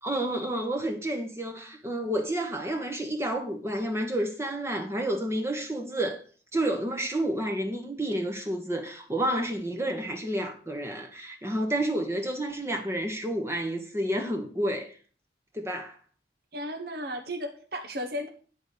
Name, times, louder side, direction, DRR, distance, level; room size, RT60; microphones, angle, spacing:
voice 1, 0.0-6.2 6.5-15.0 15.5-16.0, right 1 dB, 15° right, 1.1 m, -30 dB
voice 2, 16.5-18.3, equal, 55° right, 1.1 m, -34 dB
10.5 x 4.1 x 6.6 m
head